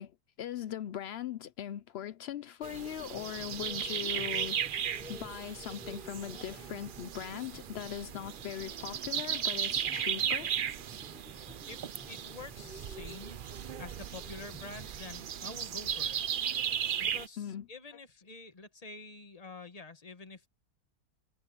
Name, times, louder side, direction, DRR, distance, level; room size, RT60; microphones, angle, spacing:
voice 1, 0.0-4.6 5.1-10.5 17.4-17.6, left 10 dB, 70° left, 0.6 m, -40 dB
sound 1, 2.6-17.3, right 9 dB, 70° right, 0.5 m, -36 dB
sound 2, 3.1-15.0, right 1 dB, 5° right, 0.3 m, -52 dB
voice 2, 11.7-16.2 17.0-20.5, left 3 dB, 25° left, 1.3 m, -48 dB
omnidirectional pair, 1.7 m